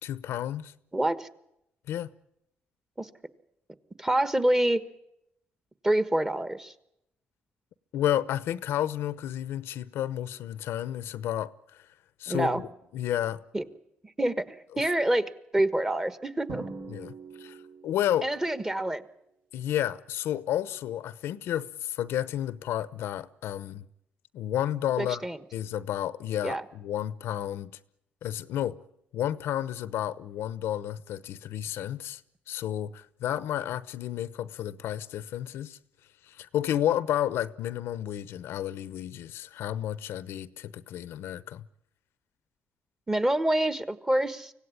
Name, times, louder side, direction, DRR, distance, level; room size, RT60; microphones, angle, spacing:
voice 1, 0.0-0.7 1.9-2.1 7.9-11.8 12.2-13.4 16.9-17.6 17.8-18.3 19.5-23.8 24.3-25.2 25.5-27.7 28.2-28.8 29.1-32.2 32.5-35.8 36.2-41.7, left 11 dB, 85° left, 0.9 m, -31 dB
voice 2, 0.9-1.3 3.0-3.1 4.0-4.8 5.8-6.7 12.3-12.6 13.5-13.6 14.0-16.7 18.2-19.0 25.0-25.4 26.4-26.6 43.1-44.5, right 1 dB, 15° right, 1.4 m, -27 dB
Drum, 16.5-18.2, right 4 dB, 70° right, 5.2 m, -42 dB
25.0 x 17.0 x 9.8 m
cardioid pair, 105°, 4 cm